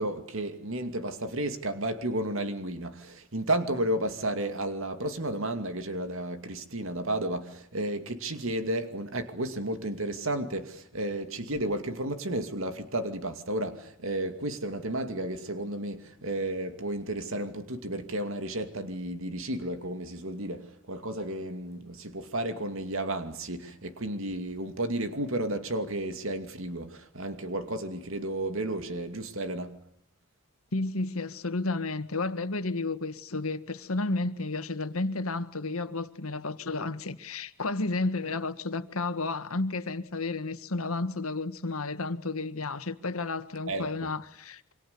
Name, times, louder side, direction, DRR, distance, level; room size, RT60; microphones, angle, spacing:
voice 1, 0.0-29.8 43.7-43.9, right 1 dB, 75° right, 2.5 m, -32 dB
voice 2, 30.7-44.7, left 3 dB, 90° left, 1.7 m, -32 dB
28.0 x 25.5 x 6.9 m
head